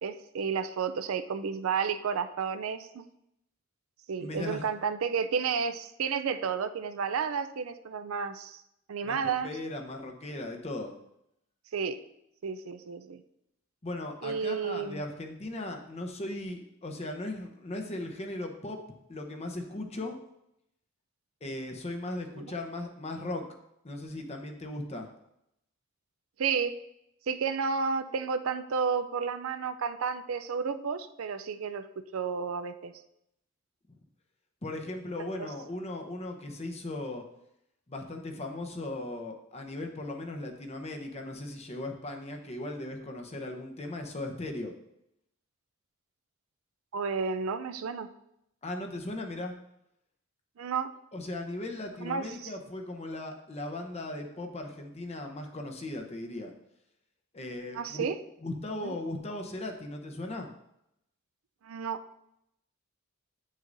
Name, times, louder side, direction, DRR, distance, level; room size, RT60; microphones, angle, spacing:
voice 1, 0.0-3.0 4.1-8.6 8.9-9.5 11.7-12.0 12.4-13.2 14.2-15.0 22.4-22.5 26.4-26.8 27.3-32.9 35.4-35.5 46.9-48.1 50.6-50.9 52.0-52.5 57.7-58.2 58.8-58.9 61.6-62.0, right 6 dB, 75° right, 11 dB, 0.4 m, -31 dB
voice 2, 4.2-4.6 9.0-10.9 13.8-18.8 19.1-20.2 21.4-23.4 23.8-25.1 34.6-37.2 37.9-44.7 48.6-49.5 51.1-56.5 57.3-58.1 58.4-60.5, left 2 dB, 30° left, 4 dB, 0.8 m, -37 dB
8.7 x 6.4 x 2.6 m, 0.80 s
head